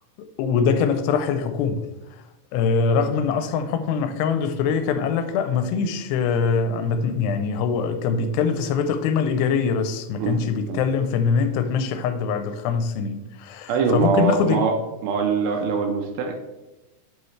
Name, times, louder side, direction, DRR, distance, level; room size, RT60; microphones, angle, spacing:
voice 1, 0.4-1.9 2.5-14.6, left 5 dB, 85° left, 2.7 m, -23 dB
voice 2, 13.7-14.8 15.0-16.3, right 5 dB, 75° right, 2.3 m, -23 dB
8.6 x 5.6 x 3.2 m
omnidirectional pair, 4.8 m